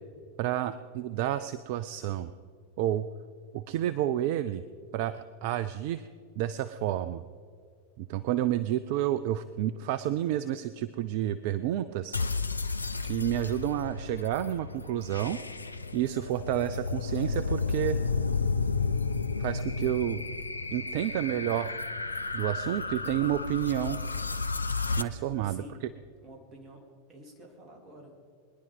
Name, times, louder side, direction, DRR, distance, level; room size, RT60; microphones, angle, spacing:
voice 1, 0.4-2.3 2.8-3.1 3.5-4.6 4.9-6.1 6.4-7.2 8.0-12.2 13.0-15.4 15.9-18.0 19.4-20.2 20.7-21.7 22.3-24.0 25.0-25.6, right 12 dB, 50° right, 13 dB, 0.5 m, -30 dB
sound 1, 12.1-25.0, left 4 dB, 80° left, 0.5 m, -32 dB
voice 2, 25.4-25.9 26.2-26.8 27.1-28.1, right 1 dB, 25° right, 1 dB, 3.3 m, -49 dB
21.5 x 10.5 x 5.3 m, 2.1 s
figure-of-eight pair, 90°, 0 cm